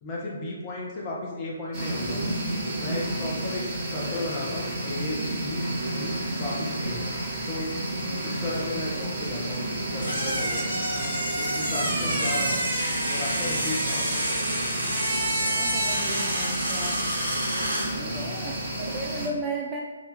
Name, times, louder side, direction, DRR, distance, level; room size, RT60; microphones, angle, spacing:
voice 1, 0.0-2.2 2.8-7.0 7.5-7.7 8.2-9.7 9.9-12.6 13.1-14.1 17.9-18.4, left 2 dB, 25° left, -4 dB, 1.0 m, -35 dB
sound 1, 1.7-19.3, right 1 dB, 30° right, 1.0 m, -31 dB
sound 2, 10.0-17.9, right 1 dB, 85° right, 1.1 m, -28 dB
voice 2, 13.4-13.7 15.5-17.0 18.0-19.8, right 2 dB, 15° right, -2 dB, 0.4 m, -35 dB
4.0 x 2.8 x 3.2 m, 1.4 s
figure-of-eight pair, 135°, 0 cm